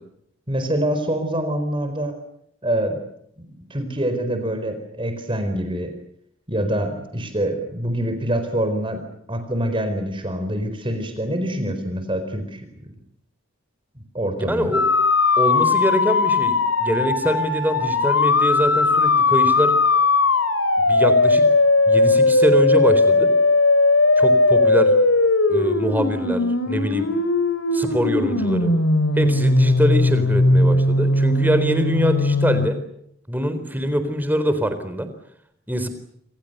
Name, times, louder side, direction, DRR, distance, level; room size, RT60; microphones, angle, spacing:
voice 1, 0.5-2.2 2.6-3.0 3.4-5.9 6.5-9.0 9.3-12.6 14.0-14.7, right 1 dB, 25° right, 8 dB, 4.5 m, -25 dB
voice 2, 14.4-14.8 15.4-19.7 20.9-21.4 21.9-23.3 24.2-24.9 25.5-27.1 27.7-28.7 29.2-32.8 33.3-35.1 35.7-35.9, equal, 10° right, 9 dB, 4.1 m, -23 dB
sound 1, 14.7-32.7, left 3 dB, 75° left, 3.3 m, -18 dB
27.5 x 27.0 x 6.8 m, 0.73 s
head